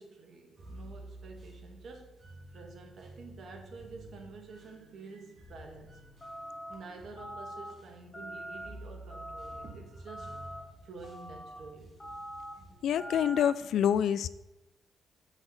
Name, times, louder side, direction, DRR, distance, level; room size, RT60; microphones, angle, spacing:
voice 1, 0.0-2.2 2.5-6.0 6.7-10.3 10.8-11.9, right 4 dB, 65° right, 3 dB, 1.5 m, -49 dB
sound 1, 0.6-13.3, right 1 dB, 35° right, 2.3 m, -52 dB
sound 2, 6.2-6.7 7.2-7.7 8.1-8.7 9.1-9.6 10.1-10.6 11.0-11.6 12.0-12.5 13.0-13.5, right 1 dB, 25° left, 1.7 m, -43 dB
voice 2, 12.8-14.3, left 9 dB, 75° left, 15 dB, 0.3 m, -27 dB
6.5 x 4.9 x 5.8 m, 0.98 s
cardioid pair, 100°, 0 cm